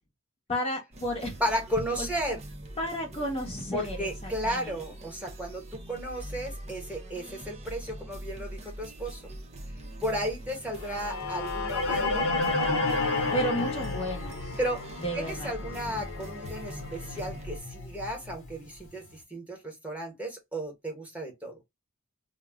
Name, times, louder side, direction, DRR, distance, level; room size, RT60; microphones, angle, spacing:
voice 1, 0.5-1.4 2.0-2.1 2.8-4.8 13.3-14.6 15.0-15.5, equal, 25° left, 0.7 m, -32 dB
sound 1, 0.9-17.6, right 1 dB, 30° right, 0.5 m, -42 dB
voice 2, 1.4-2.4 3.7-5.6 5.9-9.2 10.0-12.3 13.0-13.4 14.6-14.8 15.1-21.6, equal, 5° right, 1.0 m, -34 dB
sound 2, 10.9-18.9, left 3 dB, 65° left, 0.9 m, -32 dB
2.3 x 2.0 x 3.4 m
head